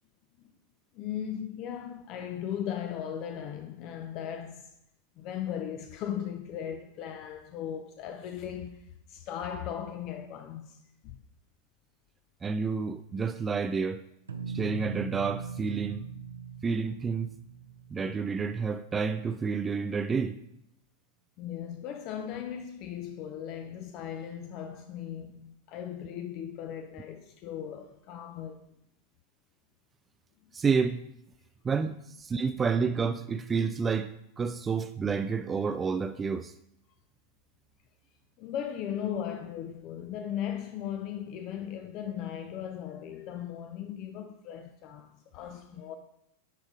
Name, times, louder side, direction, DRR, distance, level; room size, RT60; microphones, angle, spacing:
voice 1, 0.9-4.7 5.2-11.2 21.4-28.7 38.4-45.9, left 9 dB, 40° left, 0.5 m, -37 dB
voice 2, 12.4-14.0 14.5-16.1 16.6-17.3 17.9-20.4 30.5-31.1 31.6-36.5, right 5 dB, 20° right, 0.3 m, -29 dB
sound 1, 14.3-19.2, right 6 dB, 75° right, 0.6 m, -41 dB
10.5 x 3.7 x 4.8 m
figure-of-eight pair, 90°, 0 cm